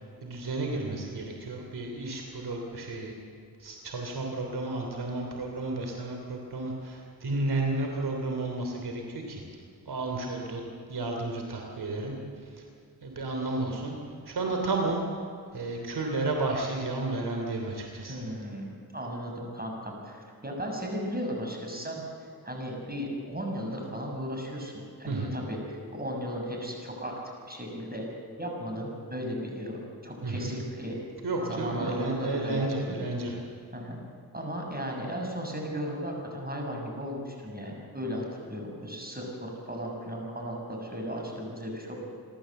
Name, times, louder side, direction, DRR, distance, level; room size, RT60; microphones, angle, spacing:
voice 1, 0.2-3.1 3.6-9.4 9.9-10.6 10.9-12.2 13.0-13.9 14.3-15.0 15.5-18.2 25.1-25.3 30.2-30.5 31.2-33.4, right 2 dB, 80° right, 1 dB, 3.2 m, -32 dB
voice 2, 18.1-25.6 25.9-27.1 27.5-28.1 28.4-30.9 31.4-33.0 33.7-34.0 34.3-41.9, equal, 25° right, 1 dB, 6.9 m, -36 dB
28.0 x 13.0 x 7.8 m, 2.3 s
cardioid pair, 55°, 38 cm